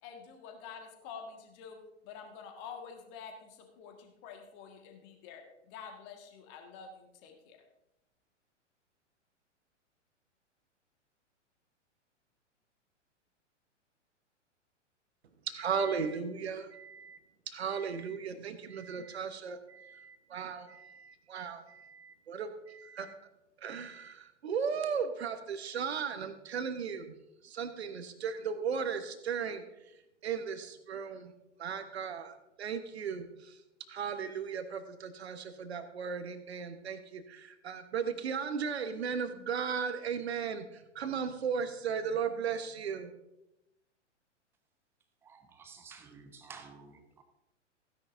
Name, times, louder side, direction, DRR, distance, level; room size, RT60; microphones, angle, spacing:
voice 1, 0.0-1.8 2.0-7.6, left 6 dB, 30° left, 3 dB, 1.8 m, -48 dB
voice 2, 15.5-17.2 17.5-23.1 23.6-27.1 27.4-29.6 30.2-31.3 31.6-33.6 33.9-43.1, right 6 dB, 60° right, 9 dB, 1.3 m, -36 dB
voice 3, 45.2-47.2, right 5 dB, 5° right, 8 dB, 0.4 m, -52 dB
16.0 x 10.0 x 2.7 m, 0.90 s
figure-of-eight pair, 105°, 37 cm